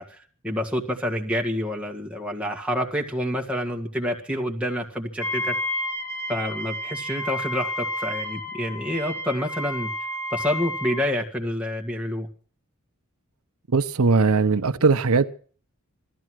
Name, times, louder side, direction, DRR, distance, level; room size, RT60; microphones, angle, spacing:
voice 1, 0.0-5.6 6.3-9.9 10.3-12.3, equal, 5° right, 1 dB, 1.8 m, -28 dB
Wind instrument woodwind instrument, 5.2-11.1, left 1 dB, 15° left, 1.8 m, -31 dB
voice 2, 13.7-15.3, right 4 dB, 90° right, 10 dB, 0.8 m, -19 dB
17.0 x 13.0 x 6.2 m, 0.44 s
head